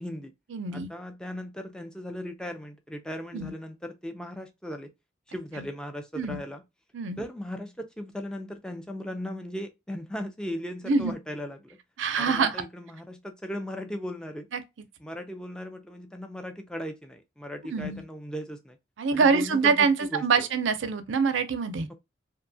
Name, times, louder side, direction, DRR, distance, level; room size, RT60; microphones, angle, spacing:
voice 1, 0.0-0.3 0.7-4.9 5.3-6.6 7.2-11.8 12.2-14.5 15.0-18.8 19.1-20.5, equal, 5° left, 0.3 m, -37 dB
voice 2, 0.5-0.9 3.3-3.5 5.6-5.7 6.2-6.4 6.9-7.2 10.9-11.1 12.0-12.6 14.5-14.6 17.7-18.0 19.0-21.9, right 5 dB, 80° right, 0.5 m, -25 dB
2.7 x 2.3 x 2.6 m
head